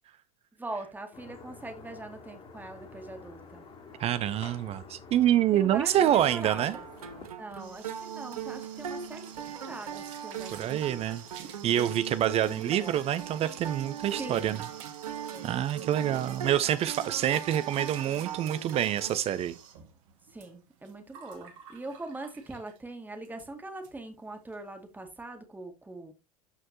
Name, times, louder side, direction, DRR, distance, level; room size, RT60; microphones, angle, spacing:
voice 1, 0.6-3.6 5.5-6.9 7.4-11.1 12.2-13.1 14.2-14.7 15.3-16.5 17.2-17.4 20.3-26.1, right 2 dB, 10° right, 2.1 m, -42 dB
sound 1, 1.1-7.3, left 4 dB, 30° left, 2.6 m, -49 dB
voice 2, 4.0-6.7 10.5-11.2 11.6-14.6 15.4-19.6, right 11 dB, 35° right, 0.7 m, -27 dB
sound 2, 6.0-19.2, right 8 dB, 75° right, 1.2 m, -40 dB
sound 3, 7.1-22.9 23.2-23.5 23.8-23.9 24.2-24.6, right 8 dB, 55° right, 1.8 m, -49 dB
13.0 x 4.4 x 2.9 m
figure-of-eight pair, 85°, 19 cm